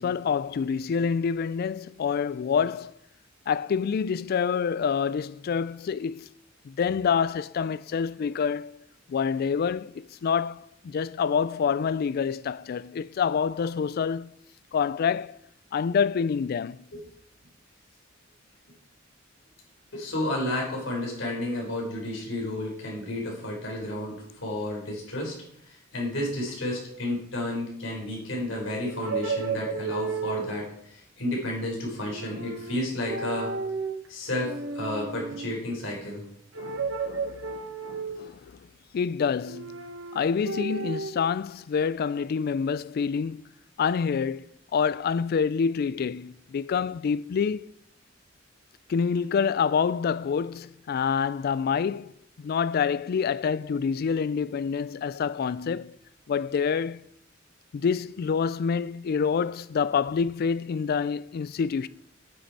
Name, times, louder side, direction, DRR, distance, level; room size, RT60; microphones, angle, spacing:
voice 1, 0.0-2.9 3.5-6.3 6.6-8.8 9.1-14.3 14.7-15.4 15.7-16.8 36.6-38.6 38.9-39.8 40.1-43.4 43.8-44.5 44.7-47.7 48.9-52.1 52.4-56.0 56.3-57.0 57.7-61.9, left 6 dB, 50° left, 0.3 m, -27 dB
voice 2, 19.9-25.3 25.7-33.5 34.1-36.2, left 1 dB, 70° left, 4.0 m, -32 dB
sound 1, 28.9-30.7 32.0-32.8 33.0-34.0 34.4-35.6 36.5-38.4 39.4-41.1, right 4 dB, 90° right, 0.9 m, -33 dB
9.6 x 6.5 x 4.7 m
head